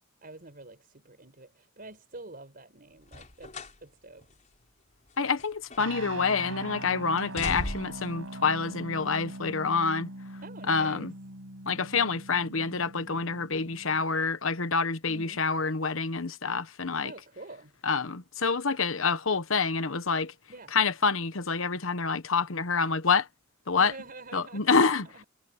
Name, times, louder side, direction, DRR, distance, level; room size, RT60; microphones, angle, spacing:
voice 1, 0.2-4.3 10.4-11.1 15.1-15.4 17.0-17.8 20.5-20.7 23.8-25.2, right 2 dB, 45° right, 5.5 m, -47 dB
sound 1, 3.0-3.8 4.2-4.3 5.1-6.1 6.4-6.8 7.2-8.1 9.0-9.1, left 1 dB, 35° left, 4.4 m, -39 dB
voice 2, 5.2-10.1 10.7-11.1 11.7-17.1 17.8-20.3 20.7-23.3 23.7-23.9 24.3-25.1, left 5 dB, 70° left, 1.2 m, -27 dB
sound 2, 5.8-14.0, right 1 dB, 75° right, 5.3 m, -42 dB
head